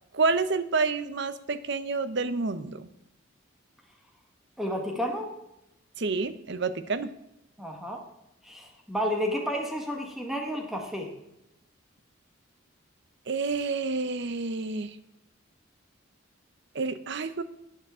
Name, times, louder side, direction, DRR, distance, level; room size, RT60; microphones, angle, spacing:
voice 1, 0.1-2.9 6.0-7.1 13.3-14.9 16.7-17.4, right 4 dB, 60° right, 13 dB, 0.7 m, -29 dB
voice 2, 4.6-5.3 7.6-8.0 8.4-11.1, equal, ahead, 1 dB, 1.4 m, -31 dB
13.0 x 9.2 x 3.7 m, 0.86 s
head